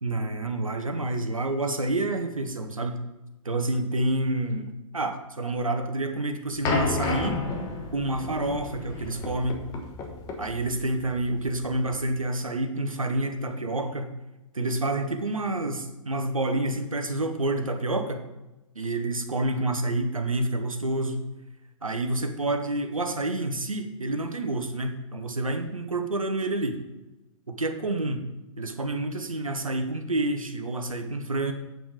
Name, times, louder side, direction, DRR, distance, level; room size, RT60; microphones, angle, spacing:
voice 1, 0.0-3.0 3.4-7.4 7.9-9.6 10.4-14.1 14.5-18.3 18.7-21.2 21.8-26.7 27.5-28.2 28.6-31.5, right 2 dB, 80° right, 6 dB, 1.0 m, -28 dB
sound 1, 6.6-12.1, left 3 dB, 20° left, 1.3 m, -32 dB
7.8 x 7.1 x 5.0 m, 1.0 s
figure-of-eight pair, 115°, 17 cm